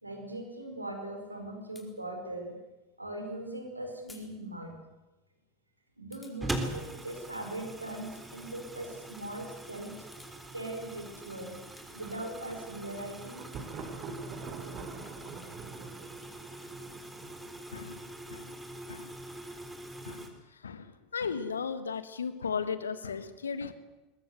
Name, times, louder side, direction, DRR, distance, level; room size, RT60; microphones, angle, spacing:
voice 1, 0.0-2.6 3.0-4.7 6.0-9.9 10.5-11.6 11.9-13.4, right 1 dB, 85° right, 4 dB, 4.9 m, -40 dB
sound 1, 1.8-1.9 4.1-4.3 4.6-4.7 6.1-6.4 7.9-8.3 8.6-8.8 9.9-10.4 11.4-12.1 12.7-13.7 14.0-15.5 15.9-17.5, left 3 dB, 15° left, 4.6 m, -59 dB
sound 2, 6.4-20.3, right 2 dB, 10° right, 3.8 m, -43 dB
Thunder, 11.9-17.7, right 4 dB, 40° right, 5.1 m, -45 dB
voice 2, 17.7-18.0 18.3-18.5 18.9-19.1 20.0-20.4 20.6-23.7, left 6 dB, 75° left, 13 dB, 1.6 m, -36 dB
22.0 x 21.5 x 8.1 m, 1.0 s
figure-of-eight pair, 80°, 0 cm